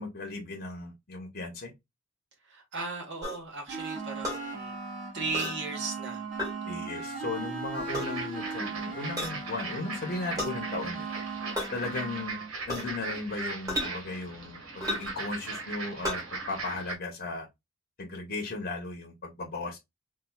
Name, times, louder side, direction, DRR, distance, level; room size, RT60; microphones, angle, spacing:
voice 1, 0.0-1.7 6.6-11.1 11.7-12.4 12.7-17.5 18.0-19.8, left 3 dB, 45° left, 0.9 m, -36 dB
voice 2, 2.4-4.8 5.1-6.3 6.9-7.2, right 4 dB, 60° right, 1.2 m, -36 dB
sound 1, 3.2-3.4 4.2-4.4 5.3-5.6 6.4-6.5 7.8-8.1 9.2-9.4 10.4-10.6 11.6-11.7 12.7-13.0 13.7-13.9 14.8-15.2 16.0-16.2, left 1 dB, 20° right, 1.9 m, -32 dB
sound 2, 3.7-12.5, right 4 dB, 40° right, 1.9 m, -38 dB
sound 3, 7.8-16.9, right 3 dB, 80° right, 1.5 m, -39 dB
4.1 x 2.6 x 2.3 m
head